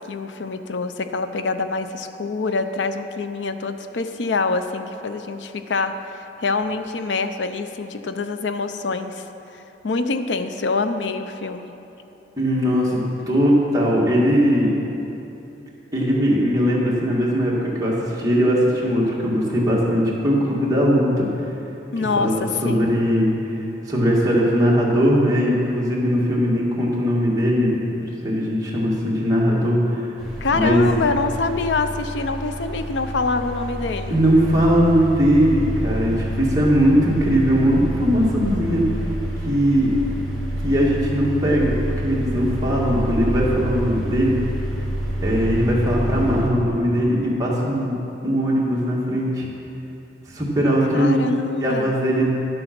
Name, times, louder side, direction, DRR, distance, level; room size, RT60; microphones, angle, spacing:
voice 1, 0.1-5.9 6.4-9.2 9.8-11.7 21.9-22.9 30.4-34.2 50.9-51.9, left 3 dB, 80° left, 9 dB, 0.5 m, -25 dB
voice 2, 12.4-13.0 13.3-14.8 15.9-21.3 22.2-23.3 23.9-27.8 28.1-30.1 30.5-30.8 34.1-38.8 39.5-39.9 40.6-41.7 42.0-44.4 45.2-47.9 48.2-49.5 50.3-51.2 51.6-52.3, equal, 20° right, -5 dB, 1.9 m, -19 dB
sound 1, 30.2-46.5, equal, ahead, 1.9 m, -28 dB
11.0 x 7.8 x 5.9 m, 3.0 s
head